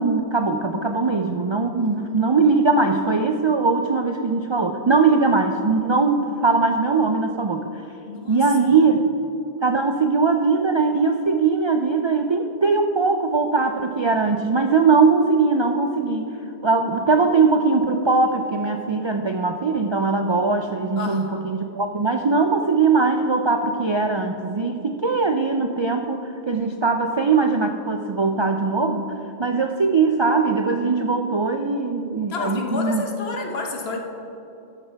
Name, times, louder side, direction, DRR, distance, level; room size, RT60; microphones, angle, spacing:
voice 1, 0.0-7.7 8.3-9.0 9.6-16.3 16.6-29.1 29.4-33.0, right 4 dB, 50° right, 5 dB, 0.3 m, -20 dB
voice 2, 1.8-2.1 8.1-8.4 8.7-8.8 21.0-21.4 32.3-34.0, left 3 dB, 70° left, 2 dB, 1.3 m, -30 dB
12.5 x 11.5 x 3.4 m, 2.9 s
omnidirectional pair, 1.1 m